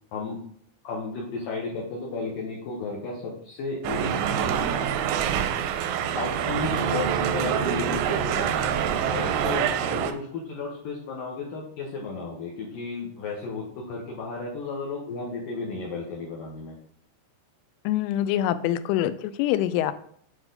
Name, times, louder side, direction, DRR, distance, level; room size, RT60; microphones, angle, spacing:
voice 1, 0.8-4.1 6.2-8.6 9.1-16.7, left 3 dB, 70° left, -3 dB, 2.1 m, -33 dB
sound 1, 3.8-10.1, right 8 dB, 85° right, 2.9 m, -26 dB
voice 2, 17.9-19.9, left 12 dB, 90° left, 12 dB, 3.1 m, -25 dB
8.9 x 4.9 x 3.9 m, 0.64 s
omnidirectional pair, 5.5 m